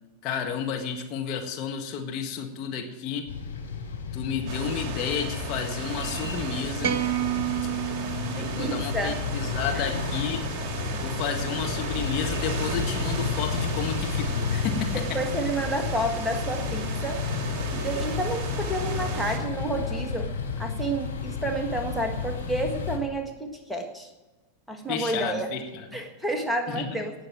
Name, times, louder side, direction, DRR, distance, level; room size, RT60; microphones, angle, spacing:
voice 1, 0.2-3.3 4.1-7.0 8.0-10.5 10.9-15.2 24.9-25.9 26.7-27.0, left 7 dB, 40° left, 3 dB, 1.7 m, -31 dB
sound 1, 3.3-23.0, left 6 dB, 75° left, 2.7 m, -32 dB
sound 2, 4.5-19.4, right 5 dB, 35° right, 2.2 m, -35 dB
sound 3, 6.8-9.2, right 12 dB, 50° right, 1.0 m, -30 dB
voice 2, 8.3-9.2 9.7-9.9 14.9-17.2 17.7-20.3 20.6-24.1 24.7-25.5 25.9-27.1, right 1 dB, ahead, 3 dB, 1.6 m, -30 dB
18.5 x 6.4 x 7.5 m, 1.2 s
figure-of-eight pair, 90°, 0 cm